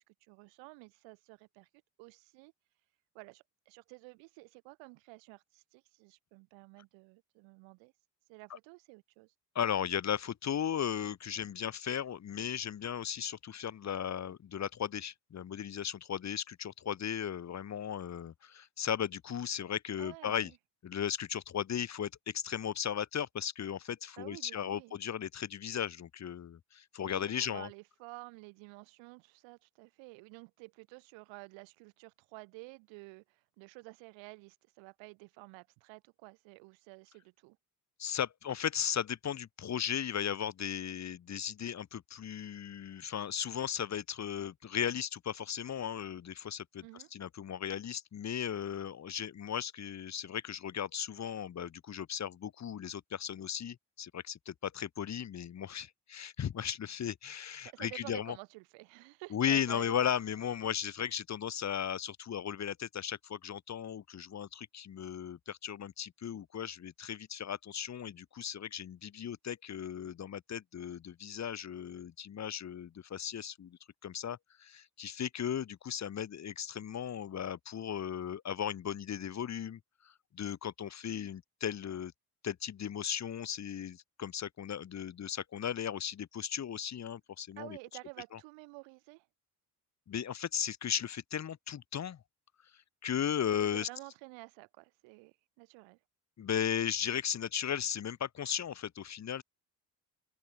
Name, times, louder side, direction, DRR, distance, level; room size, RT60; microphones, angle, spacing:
voice 1, 0.0-1.7 2.0-2.5 3.1-7.9 8.3-9.3 20.0-20.6 24.2-24.9 27.0-37.6 46.8-47.1 57.6-60.0 87.6-89.3 93.6-96.0, right 28 dB, 70° right, 2.6 m, -51 dB
voice 2, 9.5-20.5 20.8-27.7 38.0-46.8 47.1-58.4 59.3-79.8 80.3-82.1 82.4-87.8 90.1-92.2 93.0-93.9 96.4-99.4, left 9 dB, 35° left, 1.2 m, -36 dB
figure-of-eight pair, 50°, 47 cm